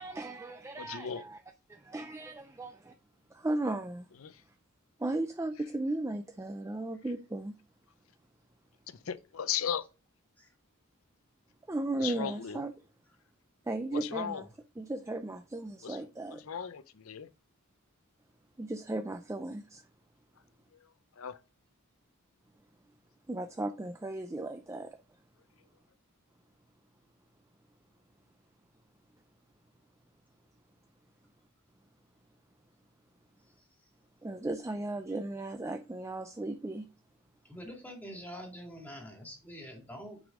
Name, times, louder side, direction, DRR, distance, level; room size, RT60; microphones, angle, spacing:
voice 1, 0.0-1.4 1.9-2.9 3.4-4.1 5.0-7.5 11.7-12.7 13.7-14.5 14.8-16.4 18.6-19.8 23.3-24.9 34.2-36.8, right 2 dB, 15° right, 0.4 m, -36 dB
voice 2, 0.8-1.2 4.2-4.4 8.9-9.8 12.0-12.6 13.9-14.4 15.8-16.0 16.3-17.3 21.2-21.4, left 8 dB, 70° left, 0.6 m, -36 dB
voice 3, 37.5-40.2, equal, 10° left, 2.1 m, -45 dB
6.2 x 5.2 x 3.7 m
head